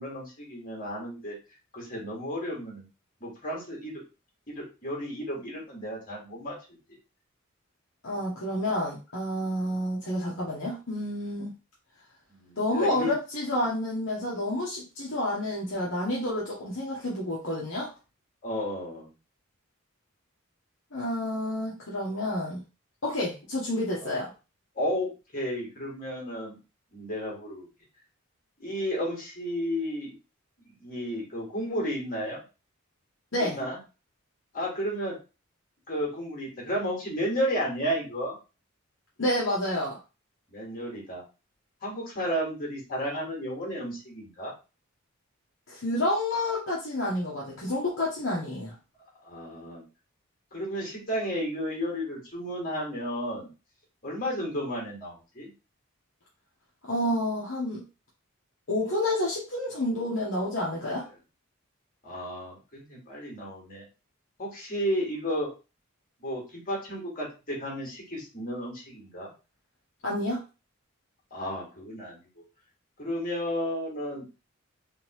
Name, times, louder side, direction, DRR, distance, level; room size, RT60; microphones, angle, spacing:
voice 1, 0.0-1.4 1.7-2.9 3.2-4.0 4.5-6.5 8.1-8.2 9.6-9.7 12.3-13.1 18.4-19.1 24.0-24.1 24.8-26.6 26.9-27.7 28.6-30.1 30.7-32.4 33.4-33.8 34.5-35.1 35.9-38.4 40.5-41.2 41.8-44.5 49.2-49.8 50.5-53.5 54.0-55.5 62.0-63.8 64.4-65.5 66.2-69.3 71.3-72.4 73.0-74.3, equal, 40° left, -3 dB, 2.1 m, -33 dB
voice 2, 8.0-11.5 12.6-17.9 20.9-22.6 23.0-24.3 33.3-33.6 39.2-40.0 45.7-48.7 56.8-57.8 58.7-61.1 70.0-70.4, left 1 dB, 65° left, -5 dB, 1.1 m, -29 dB
3.8 x 3.4 x 3.1 m, 0.30 s
head